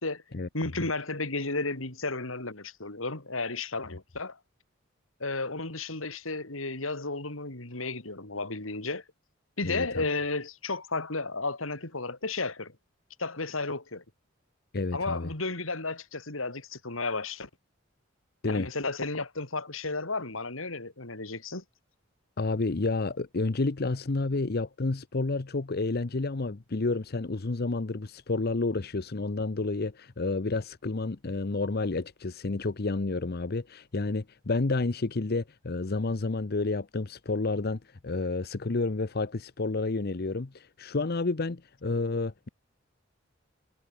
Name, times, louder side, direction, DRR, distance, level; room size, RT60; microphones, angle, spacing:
voice 1, 0.5-4.4 5.2-9.0 9.6-12.7 13.2-14.0 14.9-17.5 18.5-21.6, left 3 dB, 85° left, 3.7 m, -33 dB
voice 2, 9.6-10.0 14.7-15.3 18.4-18.7 22.4-42.5, left 3 dB, 50° left, 0.8 m, -30 dB
head